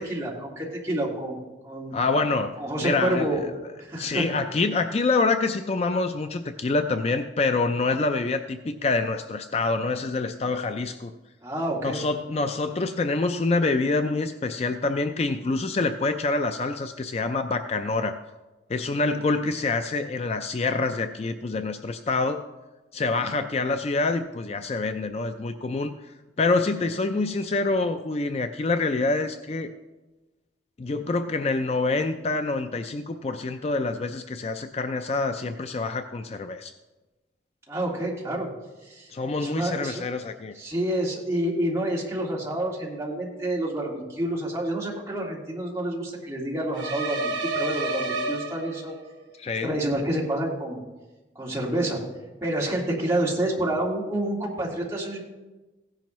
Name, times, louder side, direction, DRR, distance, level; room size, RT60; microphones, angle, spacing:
voice 1, 0.0-1.4 1.6-2.0 2.6-3.4 3.8-4.3 11.4-12.1 37.7-38.5 38.8-40.0 40.5-49.0 49.6-50.8 51.4-52.0 52.4-55.2, right 1 dB, 15° right, -3 dB, 2.1 m, -28 dB
voice 2, 1.9-3.4 4.0-11.1 11.8-18.2 18.7-22.4 22.9-25.9 26.4-29.8 30.8-36.7 39.1-40.5 49.4-49.7, left 3 dB, 35° left, 8 dB, 0.4 m, -26 dB
sound 1, 46.7-49.1, right 2 dB, 75° right, 2.8 m, -29 dB
16.0 x 10.5 x 3.1 m, 1.1 s
head